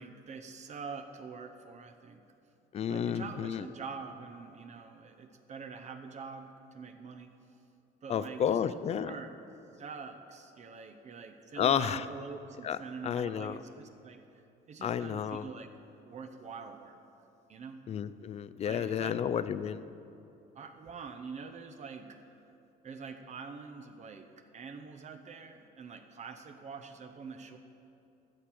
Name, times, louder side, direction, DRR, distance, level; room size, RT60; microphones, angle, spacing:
voice 1, 0.0-2.2 2.9-7.3 8.0-9.4 9.7-14.2 14.7-15.7 16.1-17.0 17.5-17.8 18.6-19.2 20.5-22.3 22.8-27.6, right 5 dB, 45° right, 6 dB, 0.7 m, -45 dB
voice 2, 2.7-3.7 8.1-9.1 11.6-12.0 12.6-12.8 13.0-13.6 14.8-15.5 17.9-19.9, left 8 dB, 40° left, 14 dB, 0.4 m, -31 dB
13.0 x 6.9 x 5.9 m, 2.8 s
cardioid pair, 110°, 17 cm